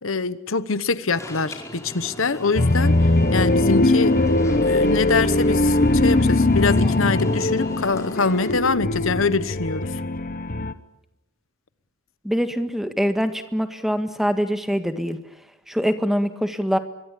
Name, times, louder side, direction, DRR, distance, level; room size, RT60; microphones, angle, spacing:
voice 1, 0.0-2.9 3.3-4.2 4.6-10.0, left 4 dB, 75° left, 15 dB, 1.1 m, -24 dB
Alarm, 1.2-8.5, left 1 dB, 15° left, 4.8 m, -39 dB
sound 1, 2.6-10.7, left 2 dB, 40° left, 1.1 m, -20 dB
voice 2, 12.2-15.2 15.7-16.8, equal, ahead, 8 dB, 1.7 m, -24 dB
25.0 x 22.5 x 8.5 m, 0.84 s
head